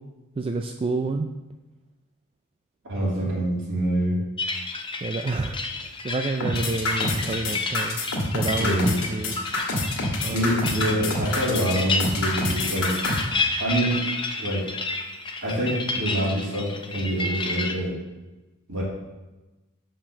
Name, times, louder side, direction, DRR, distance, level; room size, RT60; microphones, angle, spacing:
voice 1, 0.4-1.3 2.9-3.3 5.0-8.0 8.3-9.7 10.2-10.7, right 3 dB, 25° right, 5 dB, 0.4 m, -29 dB
voice 2, 2.9-4.2 8.6-8.9 10.2-13.0 13.6-14.0 14.4-14.6 15.4-17.9 18.7-18.8, right 1 dB, 65° right, -5 dB, 2.8 m, -25 dB
sound 1, 4.4-17.7, left 3 dB, 20° left, 0.7 m, -31 dB
sound 2, 6.4-13.2, left 2 dB, 75° left, 1.8 m, -27 dB
6.0 x 5.1 x 6.8 m, 1.1 s
head